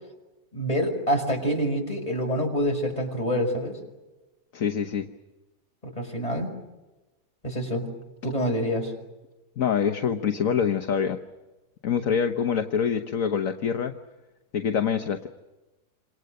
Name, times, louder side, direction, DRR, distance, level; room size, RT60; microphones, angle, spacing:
voice 1, 0.5-3.8 5.8-6.5 7.4-7.8 8.2-8.9, equal, 20° left, 1 dB, 6.0 m, -26 dB
voice 2, 4.5-5.1 9.6-11.2 11.8-13.9 14.5-15.3, left 7 dB, 55° left, 6 dB, 1.5 m, -25 dB
28.0 x 27.5 x 6.7 m, 1.1 s
omnidirectional pair, 1.7 m